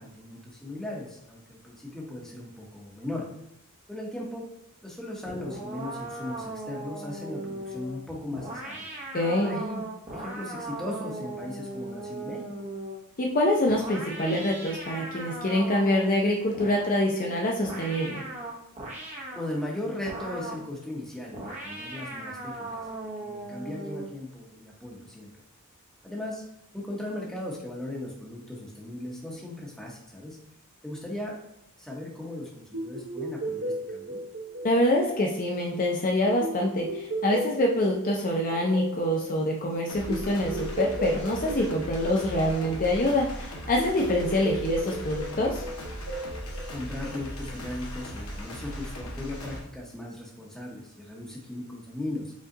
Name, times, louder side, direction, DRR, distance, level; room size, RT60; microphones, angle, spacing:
voice 1, 0.0-3.2 3.9-4.4 4.8-8.9 9.4-9.8 10.1-12.4 19.3-22.8 23.2-25.3 26.0-26.4 26.7-30.4 30.8-31.3 31.8-34.2 46.7-52.3, left 1 dB, ahead, -3 dB, 1.0 m, -37 dB
sound 1, 5.2-13.1 13.6-16.2 16.5-19.5 20.1-20.7 21.3-24.2, right 2 dB, 30° right, 1.0 m, -38 dB
voice 2, 9.1-9.6 13.2-18.2 34.6-45.6, left 1 dB, 40° left, -1 dB, 0.6 m, -25 dB
sound 2, 32.7-47.5, right 1 dB, 55° right, 0.7 m, -36 dB
sound 3, 39.9-49.6, equal, 70° left, 1.0 m, -38 dB
5.1 x 2.4 x 3.8 m, 0.81 s
head